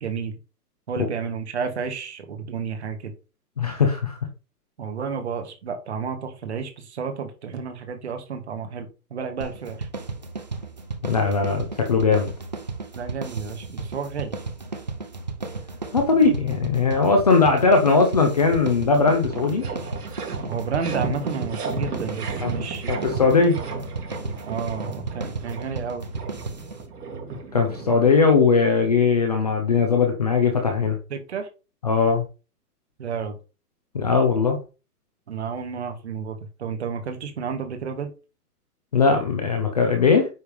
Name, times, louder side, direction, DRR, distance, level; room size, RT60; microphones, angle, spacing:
voice 1, 0.0-0.3 0.9-3.1 4.8-9.9 13.0-14.4 20.5-22.9 24.5-26.1 31.1-31.5 33.0-33.4 35.3-38.1, right 6 dB, 45° right, 5 dB, 1.9 m, -31 dB
voice 2, 3.6-4.2 11.0-12.3 15.9-19.7 22.4-22.5 22.9-23.6 27.5-31.0 31.8-32.2 33.9-34.6 38.9-40.3, left 4 dB, 25° left, 3 dB, 0.8 m, -19 dB
sound 1, 9.4-26.9, right 3 dB, 30° right, 0.6 m, -34 dB
sound 2, 18.6-18.7 19.0-28.4, right 3 dB, 70° right, 3.1 m, -34 dB
9.5 x 3.5 x 5.2 m, 0.32 s
hypercardioid pair, 180°, 47 cm